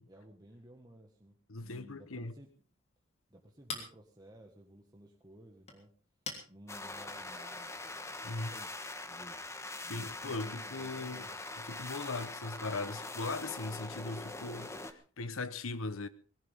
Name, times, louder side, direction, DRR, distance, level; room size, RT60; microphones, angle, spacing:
voice 1, 0.1-2.5 3.3-5.9 6.5-8.7 9.0-9.4 9.8-11.4, right 1 dB, 20° right, 1.7 m, -55 dB
voice 2, 1.5-2.3 8.2-8.5 9.9-11.3 11.6-16.1, left 3 dB, 90° left, 1.1 m, -39 dB
Chink clink, 2.4-7.9, left 4 dB, 30° left, 3.4 m, -49 dB
sound 1, 6.7-14.9, left 2 dB, 15° left, 1.2 m, -43 dB
20.0 x 17.0 x 3.6 m
head